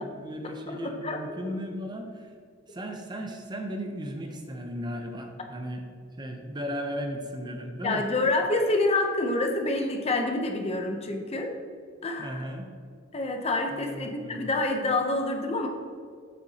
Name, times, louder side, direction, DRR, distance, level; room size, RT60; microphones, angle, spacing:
voice 1, 0.0-2.3 2.7-5.8 6.2-8.1 12.2-12.7 13.8-14.4, equal, 20° right, 3 dB, 0.6 m, -36 dB
voice 2, 0.7-1.2 1.5-1.6 7.8-11.5 12.0-12.4 13.1-15.7, left 2 dB, 30° left, 4 dB, 0.6 m, -27 dB
7.6 x 6.6 x 2.8 m, 2.1 s
head